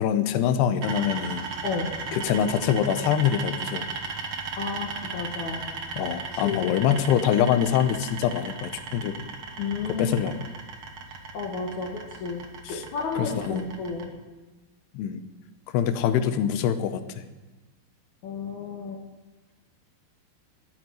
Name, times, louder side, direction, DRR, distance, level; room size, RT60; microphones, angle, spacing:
voice 1, 0.0-1.5 2.1-3.9 6.0-9.2 10.0-10.3 12.7-12.8 13.2-13.6 14.9-15.2 15.7-17.3, left 9 dB, 85° left, 11 dB, 2.9 m, -24 dB
sound 1, 0.8-14.1, right 4 dB, 75° right, 1.2 m, -36 dB
voice 2, 1.6-2.0 4.6-5.6 6.0-6.7 9.6-10.1 11.3-14.1 18.2-19.0, left 4 dB, 60° left, -1 dB, 2.4 m, -32 dB
13.5 x 9.0 x 9.1 m, 1.2 s
omnidirectional pair, 4.7 m